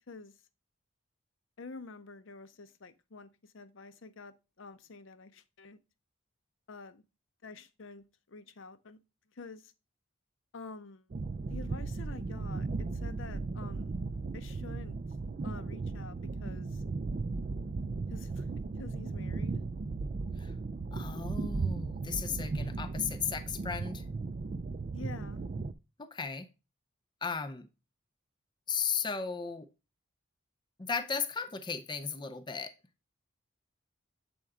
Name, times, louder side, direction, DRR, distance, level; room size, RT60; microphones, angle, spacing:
voice 1, 1.6-5.8 6.7-7.0 7.4-9.0 9.3-9.7 10.5-11.1 11.5-13.9 14.3-15.0 15.4-16.8 18.1-18.5 18.8-19.6 24.9-25.4, left 3 dB, 60° left, 0.6 m, -48 dB
sound 1, 11.1-25.7, right 3 dB, 35° right, 0.3 m, -36 dB
voice 2, 20.9-24.0 26.0-26.5 27.2-27.7 28.7-29.7 30.8-32.7, left 6 dB, 20° left, 0.5 m, -35 dB
7.7 x 4.4 x 3.6 m
head